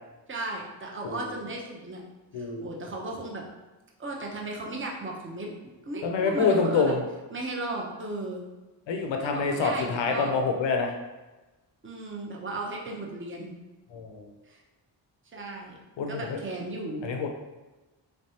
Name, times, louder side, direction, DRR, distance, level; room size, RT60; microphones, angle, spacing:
voice 1, 0.3-2.0 2.4-3.4 4.0-5.5 5.9-6.9 7.3-8.4 9.2-10.4 11.8-13.5 14.5-14.6 15.3-15.8 16.1-17.1, right 2 dB, 25° right, -1 dB, 0.8 m, -35 dB
voice 2, 2.3-2.6 6.0-7.0 8.9-10.9 13.9-14.3 16.0-16.4 17.0-17.3, left 4 dB, 80° left, 3 dB, 0.6 m, -26 dB
3.3 x 3.2 x 2.8 m, 1.1 s
cardioid pair, 65°, 44 cm